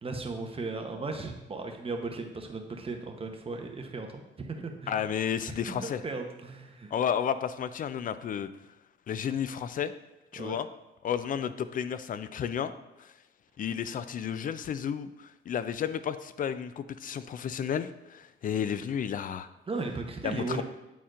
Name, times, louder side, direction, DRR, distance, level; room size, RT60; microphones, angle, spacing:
voice 1, 0.0-5.1 5.7-6.9 10.4-10.6 19.7-20.6, right 3 dB, 30° right, 3 dB, 0.8 m, -36 dB
voice 2, 4.9-6.0 6.9-8.5 9.1-9.9 10.3-10.7 11.0-12.7 13.0-13.1 13.6-19.5 20.2-20.6, left 8 dB, 45° left, 13 dB, 0.4 m, -32 dB
9.2 x 4.3 x 2.5 m, 1.0 s
cardioid pair, 90°, 20 cm